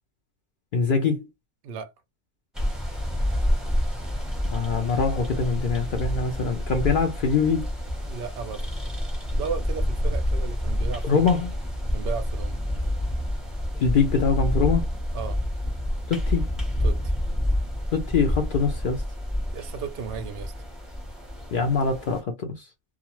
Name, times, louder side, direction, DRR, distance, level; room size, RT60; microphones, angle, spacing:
voice 1, 0.7-1.3 4.5-7.7 11.0-11.5 13.8-14.9 16.1-16.5 17.9-19.0 21.5-22.7, left 5 dB, 85° left, 0.4 m, -23 dB
sound 1, 2.6-22.2, equal, ahead, 0.5 m, -28 dB
voice 2, 8.0-8.7 9.3-11.2 11.9-12.6 15.1-15.4 16.8-17.1 19.5-20.5, right 6 dB, 70° right, 0.5 m, -34 dB
2.4 x 2.3 x 2.9 m
omnidirectional pair, 1.5 m